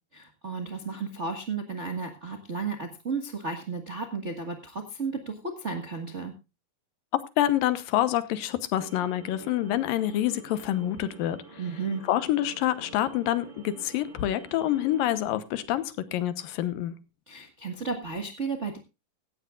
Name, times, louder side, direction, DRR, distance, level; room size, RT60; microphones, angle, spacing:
voice 1, 0.1-6.3 11.6-12.0 17.3-18.8, right 4 dB, 45° right, 0.9 m, -33 dB
voice 2, 7.4-11.6 12.1-16.9, left 13 dB, 85° left, 2.7 m, -27 dB
sound 1, 8.8-15.3, right 3 dB, 30° right, 1.7 m, -48 dB
17.0 x 14.0 x 2.4 m
omnidirectional pair, 4.0 m